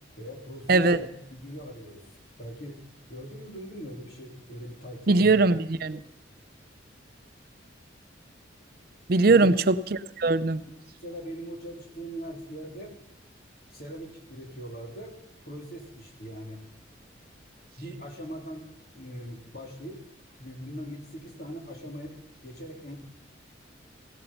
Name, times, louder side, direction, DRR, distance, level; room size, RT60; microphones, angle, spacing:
voice 1, 0.2-2.8 3.1-5.2 9.3-9.6 10.7-13.0 13.7-15.2 15.4-16.6 17.8-18.6 18.9-20.0 20.4-22.2 22.4-23.0, equal, 50° left, 0 dB, 3.4 m, -41 dB
voice 2, 0.7-1.0 5.1-6.0 9.1-9.7 10.2-10.6, right 3 dB, 50° right, 12 dB, 0.5 m, -20 dB
16.5 x 12.0 x 5.6 m, 0.88 s
head